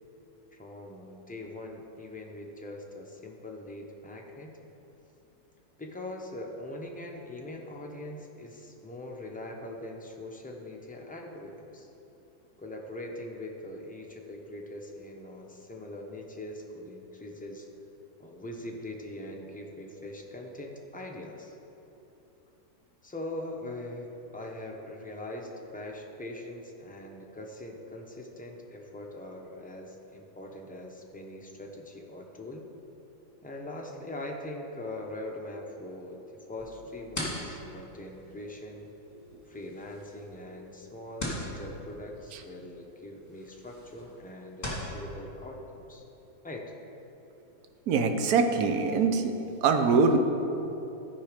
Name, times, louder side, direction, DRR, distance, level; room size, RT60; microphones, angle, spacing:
voice 1, 0.5-4.5 5.8-11.9 12.6-17.7 18.2-21.6 23.0-24.1 24.3-32.7 33.4-36.2 36.5-38.9 39.5-46.0 46.4-46.7, left 1 dB, 10° left, 0 dB, 0.4 m, -42 dB
sound 1, 36.6-44.9, left 1 dB, 25° left, 2.5 m, -41 dB
voice 2, 47.9-49.3 49.6-50.2, right 4 dB, 70° right, 6 dB, 1.2 m, -23 dB
13.5 x 5.6 x 5.0 m, 3.0 s
omnidirectional pair, 1.7 m